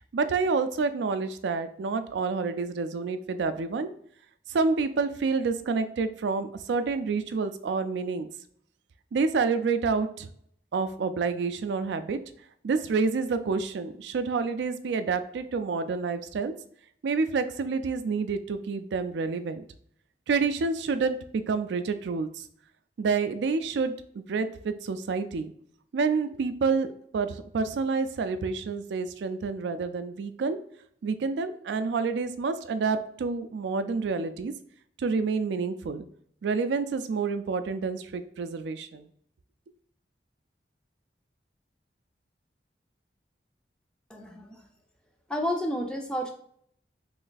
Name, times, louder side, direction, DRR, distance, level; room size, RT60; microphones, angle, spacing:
voice 1, 0.1-3.9 4.5-8.3 9.1-10.3 10.7-12.2 12.6-16.5 17.0-19.6 20.3-22.5 23.0-25.5 25.9-30.6 31.0-34.5 35.0-36.1 36.4-39.1, right 4 dB, 75° right, 11 dB, 0.3 m, -28 dB
voice 2, 44.1-44.6 45.3-46.3, equal, 5° left, 2 dB, 0.4 m, -30 dB
3.1 x 2.6 x 3.9 m, 0.65 s
head